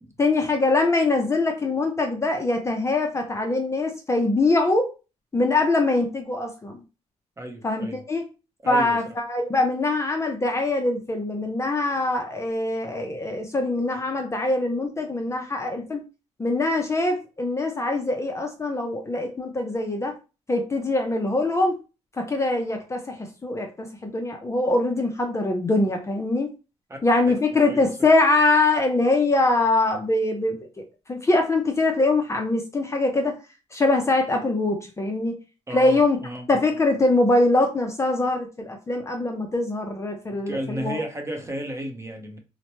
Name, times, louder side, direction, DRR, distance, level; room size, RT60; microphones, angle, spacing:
voice 1, 0.2-4.9 5.3-6.8 7.6-8.3 8.7-16.0 16.4-20.1 20.5-21.8 22.2-26.5 27.0-30.6 31.1-33.4 33.7-35.4 35.7-36.2 36.5-41.0, left 2 dB, 25° left, 0.5 m, -23 dB
voice 2, 7.4-8.0 8.6-9.0 26.9-27.0 27.7-27.9 35.7-36.5 40.5-42.4, right 1 dB, 20° right, 0.8 m, -33 dB
2.9 x 2.1 x 2.9 m
cardioid pair, 85°, 12 cm